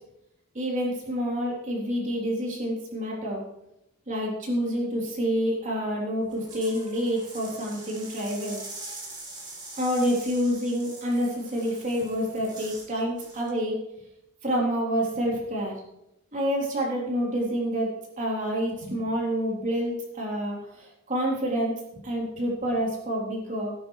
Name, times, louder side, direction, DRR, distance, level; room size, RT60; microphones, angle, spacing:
voice 1, 0.5-3.4 4.1-8.6 9.8-13.8 14.4-15.7 16.3-23.7, equal, 40° right, -3 dB, 3.7 m, -28 dB
sound 1, 6.2-12.9 13.2-13.5, right 2 dB, 20° right, 3.1 m, -43 dB
17.5 x 9.3 x 3.3 m, 0.86 s
head